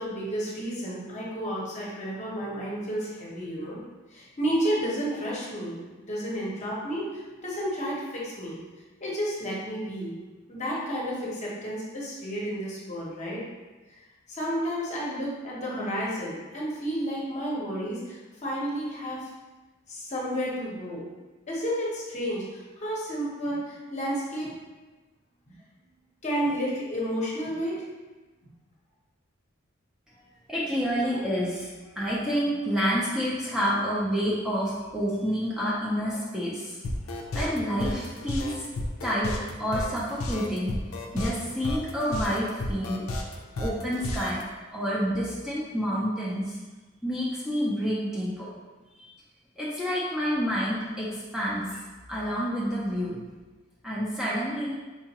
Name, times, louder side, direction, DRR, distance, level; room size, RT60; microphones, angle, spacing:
voice 1, 0.0-3.8 4.1-5.8 6.1-8.6 9.0-10.1 10.5-13.4 14.3-19.3 19.9-21.0 21.5-24.5 26.2-27.8, equal, 35° left, -5 dB, 0.9 m, -31 dB
voice 2, 30.5-36.8 37.1-38.6 39.0-40.8 41.1-43.0 43.6-44.4 44.7-46.6 47.0-48.5 49.0-49.1 49.6-51.8 52.1-53.2 53.8-54.8, equal, 5° right, -8 dB, 0.5 m, -28 dB
sound 1, 36.8-44.4, left 2 dB, 85° left, 0.5 m, -32 dB
4.6 x 2.4 x 2.9 m, 1.2 s
head